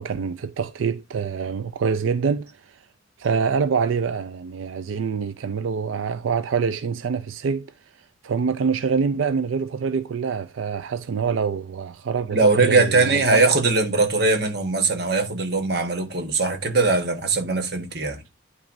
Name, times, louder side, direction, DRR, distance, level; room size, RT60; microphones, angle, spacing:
voice 1, 0.0-2.8 3.2-7.7 8.2-13.5, right 5 dB, 90° right, 0.4 m, -25 dB
voice 2, 12.3-18.2, right 3 dB, 55° right, 1.2 m, -20 dB
9.4 x 5.9 x 2.6 m
head